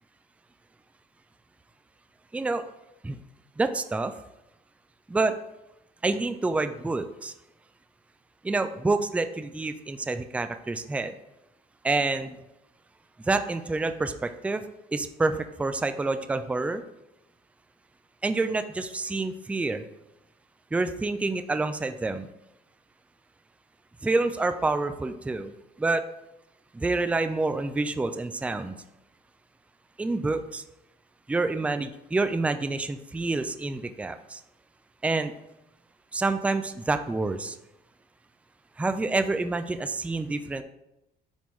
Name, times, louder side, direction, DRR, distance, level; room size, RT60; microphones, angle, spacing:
voice 1, 2.3-2.6 3.0-3.2 3.6-4.1 5.1-5.4 6.0-7.3 8.4-11.1 11.8-12.4 13.3-14.6 14.9-16.8 18.2-19.8 20.7-22.3 24.0-25.5 25.8-26.0 26.7-28.8 30.0-30.6 31.3-34.4 35.0-35.3 36.1-37.6 38.8-40.6, right 3 dB, 10° right, 9 dB, 0.4 m, -27 dB
10.0 x 3.6 x 3.1 m, 0.90 s
cardioid pair, 110°, 17 cm